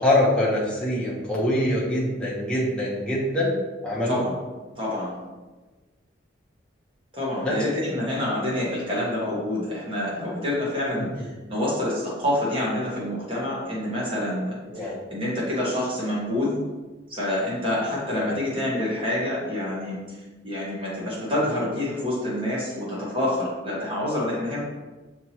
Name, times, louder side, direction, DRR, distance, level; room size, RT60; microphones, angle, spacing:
voice 1, 0.0-3.5 3.8-4.2 7.4-7.6 14.7-15.0 18.1-18.3, left 1 dB, 5° left, -6 dB, 0.8 m, -24 dB
voice 2, 4.7-5.2 7.1-11.1 11.5-16.6 17.1-20.2 20.4-24.6, left 1 dB, 25° right, -6 dB, 1.3 m, -27 dB
5.9 x 3.0 x 2.8 m, 1.2 s
head